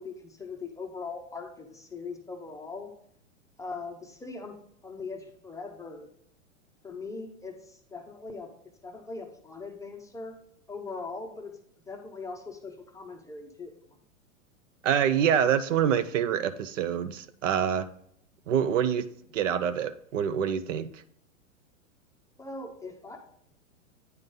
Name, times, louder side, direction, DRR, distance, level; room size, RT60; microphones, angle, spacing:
voice 1, 0.0-3.0 3.6-6.1 6.8-8.5 8.8-10.4 10.7-11.6 11.9-13.7 22.4-23.2, left 4 dB, 10° left, 0.6 m, -40 dB
voice 2, 14.8-17.9 18.5-19.1 19.3-21.0, right 8 dB, 65° right, 0.6 m, -26 dB
9.2 x 3.8 x 3.7 m
hypercardioid pair, 105°, 41 cm